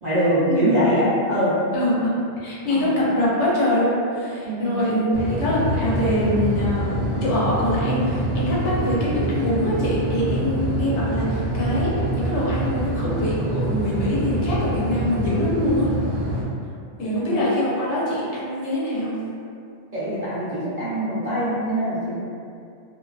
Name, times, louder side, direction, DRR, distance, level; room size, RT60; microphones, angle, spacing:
voice 1, 0.0-1.5 2.7-2.9 4.4-4.8 17.0-17.4 19.9-22.1, equal, 45° right, -11 dB, 0.7 m, -23 dB
voice 2, 1.7-16.0 17.0-19.2, left 1 dB, 80° left, -7 dB, 1.0 m, -24 dB
sound 1, 5.1-16.4, right 1 dB, 90° right, 0.9 m, -25 dB
2.4 x 2.2 x 2.3 m, 2.4 s
omnidirectional pair, 1.2 m